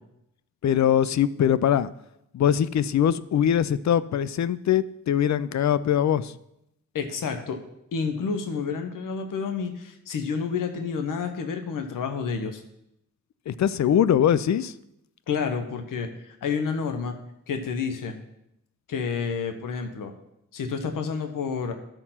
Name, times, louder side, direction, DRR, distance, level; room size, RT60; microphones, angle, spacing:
voice 1, 0.6-1.9 2.3-6.3 13.5-14.7, left 9 dB, 60° left, 17 dB, 0.5 m, -22 dB
voice 2, 6.9-7.6 7.9-12.6 15.3-17.1 17.5-18.2 18.9-20.1 20.5-21.7, left 5 dB, 85° left, 6 dB, 1.0 m, -29 dB
11.5 x 4.5 x 5.7 m, 0.82 s
cardioid pair, 65°, 32 cm